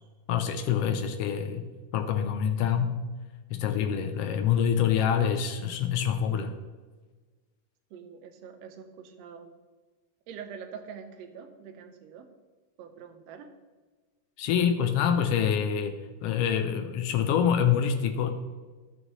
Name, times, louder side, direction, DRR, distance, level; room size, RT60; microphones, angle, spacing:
voice 1, 0.3-1.7 1.9-3.0 3.5-6.6 14.4-18.3, left 8 dB, 80° left, 6 dB, 1.4 m, -26 dB
voice 2, 7.9-9.5 10.3-12.3 12.8-13.5, right 7 dB, 70° right, 6 dB, 1.8 m, -44 dB
14.0 x 6.4 x 3.1 m, 1.3 s
omnidirectional pair, 3.4 m